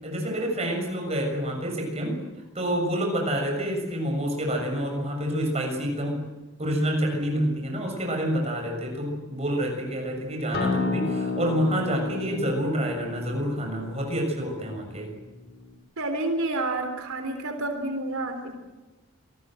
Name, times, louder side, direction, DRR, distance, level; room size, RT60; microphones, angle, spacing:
voice 1, 0.0-2.2 2.5-6.2 6.6-15.1, equal, 30° right, 2 dB, 6.8 m, -28 dB
Acoustic guitar, 10.5-15.7, left 4 dB, 50° left, 3.3 m, -32 dB
voice 2, 16.0-18.5, right 2 dB, 85° right, 5 dB, 3.8 m, -29 dB
27.5 x 19.5 x 7.9 m, 1.1 s
head